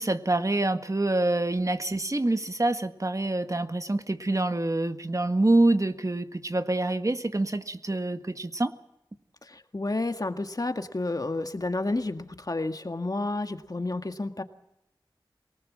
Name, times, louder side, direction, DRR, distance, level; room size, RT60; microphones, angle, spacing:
voice 1, 0.0-8.7, right 2 dB, 40° right, 9 dB, 1.6 m, -26 dB
voice 2, 9.4-14.4, left 2 dB, 45° left, 7 dB, 1.8 m, -30 dB
23.5 x 19.5 x 7.6 m, 0.84 s
wide cardioid pair, 45°, 9 cm